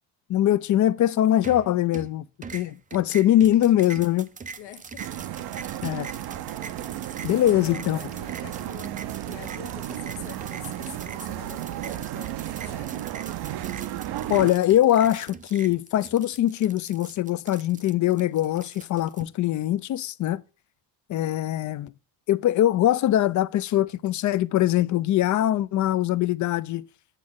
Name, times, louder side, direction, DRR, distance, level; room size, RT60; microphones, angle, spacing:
voice 1, 0.3-2.2 2.5-4.3 5.8-6.1 7.2-8.0 14.3-20.4 21.1-21.9 22.3-26.8, left 12 dB, 45° left, 0.4 m, -22 dB
sound 1, 1.4-2.1 2.4-19.2, right 5 dB, 20° right, 0.4 m, -42 dB
voice 2, 4.6-5.0 7.3-13.2, left 10 dB, 85° left, 1.3 m, -45 dB
sound 2, 5.0-14.5, right 13 dB, 60° right, 0.6 m, -34 dB
8.2 x 7.5 x 3.6 m
cardioid pair, 130°, 43 cm